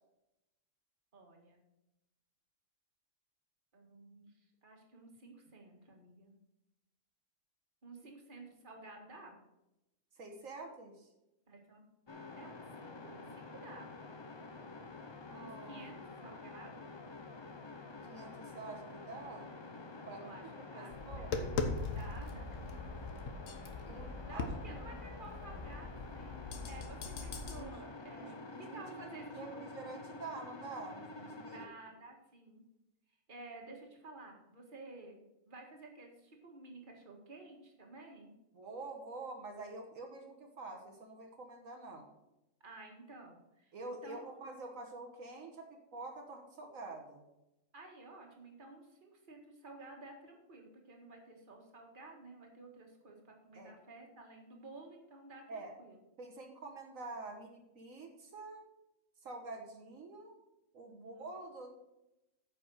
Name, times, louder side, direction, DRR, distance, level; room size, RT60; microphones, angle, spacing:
voice 1, 1.1-1.6 3.7-6.3 7.8-9.4 11.5-11.8 12.4-13.9 15.4-17.0 20.1-21.5 21.9-22.8 24.2-29.6 31.5-32.6 33.1-35.2 35.5-38.3 42.6-44.2 47.7-56.0 60.9-61.3, right 2 dB, 40° right, 1 dB, 1.9 m, -53 dB
voice 2, 10.2-11.1 15.3-15.9 18.1-19.5 20.0-20.2 20.7-21.6 23.8-25.0 27.6-27.8 28.1-31.6 38.5-42.1 43.7-47.2 53.5-53.8 55.5-55.8 56.2-58.6 59.2-60.4 60.7-61.7, right 3 dB, 80° right, 2 dB, 1.7 m, -47 dB
sound 1, 12.1-31.7, left 3 dB, 30° left, 0.6 m, -49 dB
Tap, 20.9-27.6, left 3 dB, 75° left, 1.4 m, -40 dB
9.4 x 5.5 x 6.3 m, 0.93 s
omnidirectional pair, 1.4 m